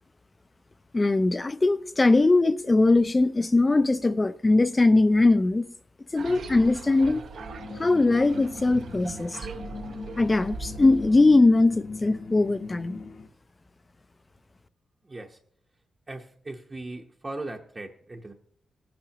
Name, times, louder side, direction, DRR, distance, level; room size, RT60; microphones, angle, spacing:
voice 1, 0.9-5.6 6.1-7.2 7.8-9.4 10.2-13.0, left 2 dB, 20° left, 0.5 m, -21 dB
sound 1, 6.2-11.2, right 5 dB, 65° right, 0.9 m, -40 dB
sound 2, 7.3-13.3, left 4 dB, 50° left, 0.9 m, -40 dB
voice 2, 15.1-15.4 16.1-18.3, right 2 dB, 25° right, 0.9 m, -38 dB
18.5 x 10.5 x 2.9 m
wide cardioid pair, 145°, 0 cm